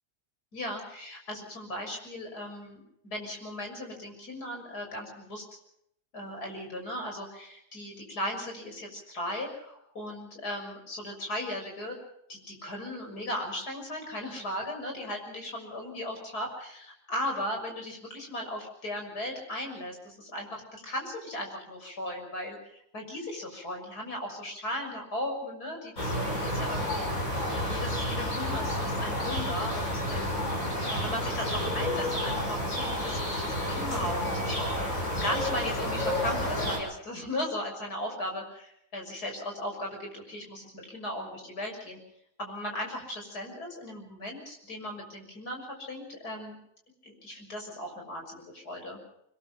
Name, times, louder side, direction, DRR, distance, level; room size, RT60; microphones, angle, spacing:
voice 1, 0.5-5.5 6.1-12.0 12.3-27.2 27.7-30.4 30.9-34.8 35.2-42.0 42.4-46.6 47.0-49.0, left 1 dB, 80° left, 2 dB, 7.0 m, -37 dB
sound 1, 26.0-36.8, left 1 dB, 55° left, 6.5 m, -30 dB
26.0 x 21.5 x 5.7 m, 0.73 s
omnidirectional pair, 1.7 m